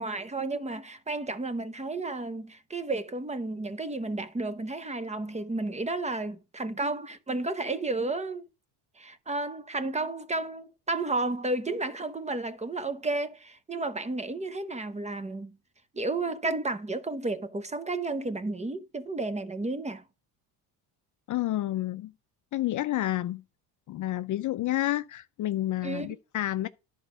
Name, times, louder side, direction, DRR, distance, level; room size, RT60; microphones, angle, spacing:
voice 1, 0.0-8.4 9.0-15.6 15.9-20.0 25.8-26.2, right 2 dB, 15° right, 0.8 m, -32 dB
voice 2, 21.3-22.1 22.5-23.4 23.9-26.7, left 14 dB, 45° left, 0.5 m, -29 dB
11.0 x 4.5 x 5.0 m
supercardioid pair, 85°, 46 cm